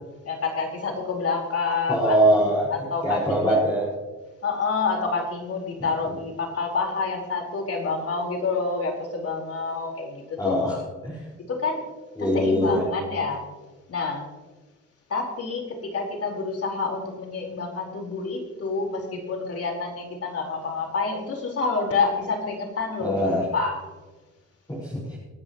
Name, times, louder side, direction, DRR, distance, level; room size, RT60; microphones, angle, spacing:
voice 1, 0.2-2.2 2.9-3.2 3.5-3.6 4.4-10.6 11.4-11.8 12.2-13.5 13.9-14.2 15.1-23.8, left 4 dB, 50° left, -1 dB, 4.6 m, -28 dB
voice 2, 1.9-2.7 3.0-3.8 5.8-5.9 10.4-10.8 11.0-11.2 12.2-12.8 23.0-23.5 24.7-25.2, right 1 dB, 10° left, -5 dB, 5.3 m, -22 dB
27.5 x 10.5 x 3.1 m, 1.3 s
cardioid pair, 90°, 30 cm